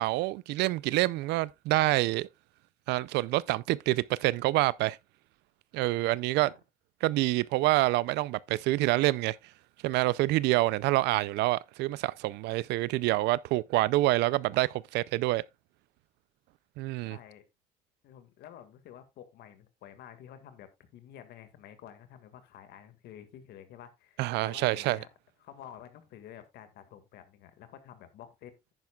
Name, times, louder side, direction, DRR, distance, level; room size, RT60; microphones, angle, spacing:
voice 1, 0.0-2.3 2.9-5.0 5.7-6.5 7.0-9.4 9.8-15.4 16.8-17.2 24.2-25.0, right 18 dB, 85° right, 0.4 m, -27 dB
voice 2, 17.1-17.4 18.0-25.1 25.4-28.7, left 10 dB, 75° left, 1.9 m, -50 dB
10.5 x 9.5 x 2.3 m
cardioid pair, 110°, 17 cm